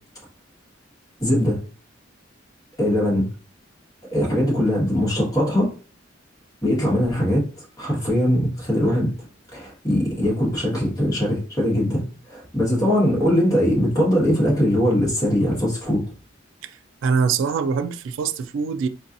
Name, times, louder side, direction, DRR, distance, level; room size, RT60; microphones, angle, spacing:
voice 1, 1.2-1.6 2.8-3.3 4.1-5.7 6.6-7.5 7.8-9.1 9.5-16.0, equal, 20° left, 1.6 m, -21 dB
voice 2, 17.0-18.9, right 5 dB, 80° right, 0.3 m, -23 dB
4.5 x 2.8 x 2.5 m
head